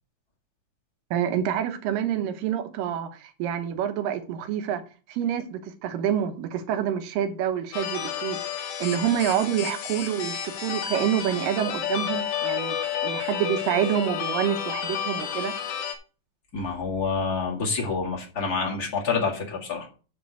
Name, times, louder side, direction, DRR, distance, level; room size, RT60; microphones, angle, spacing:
voice 1, 1.1-4.8 5.1-8.4 8.8-12.8 13.0-15.5, right 9 dB, 75° right, 8 dB, 2.6 m, -27 dB
sound 1, 7.7-16.0, left 8 dB, 70° left, 2.4 m, -31 dB
voice 2, 16.5-19.9, left 4 dB, 35° left, -1 dB, 1.8 m, -27 dB
10.5 x 3.8 x 6.7 m, 0.37 s
omnidirectional pair, 4.2 m